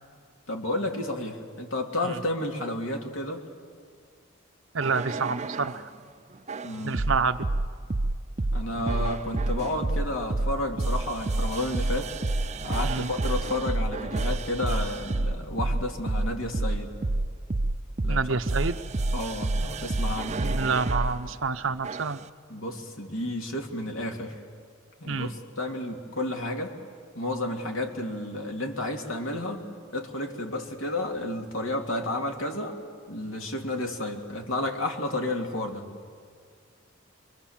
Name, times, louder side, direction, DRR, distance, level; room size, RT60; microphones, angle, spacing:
voice 1, 0.5-3.4 6.6-7.0 8.5-12.1 12.6-16.9 18.0-18.2 19.1-20.6 22.5-24.4 25.0-26.7 27.1-29.6 29.9-32.8 33.1-35.9, left 1 dB, 85° left, 2 dB, 2.8 m, -31 dB
voice 2, 4.7-5.9 6.8-7.5 12.8-13.1 18.1-18.8 20.3-22.2 25.1-25.3, right 4 dB, 75° right, 10 dB, 0.9 m, -28 dB
sound 1, 4.8-5.8 6.5-21.2 21.8-22.2, right 2 dB, 35° right, 0.6 m, -28 dB
27.0 x 23.0 x 7.4 m, 2.1 s
head